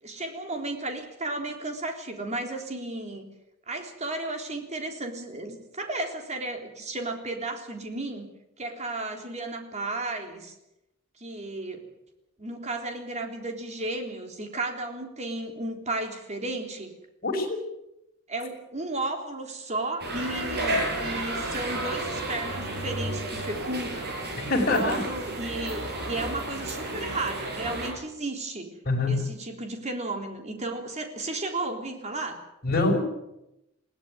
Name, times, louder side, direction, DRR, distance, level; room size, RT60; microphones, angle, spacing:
voice 1, 0.0-3.3 3.7-8.3 8.6-10.5 11.2-11.9 12.4-16.9 18.3-24.1 24.6-28.8 29.1-32.4, right 2 dB, 35° right, 4 dB, 3.6 m, -34 dB
voice 2, 17.2-17.6 24.5-25.0 28.9-29.2 32.6-33.0, left 2 dB, 45° left, 1 dB, 5.8 m, -24 dB
sound 1, 20.0-27.9, right 1 dB, 50° right, 6.8 m, -32 dB
21.0 x 17.0 x 9.3 m, 0.88 s
head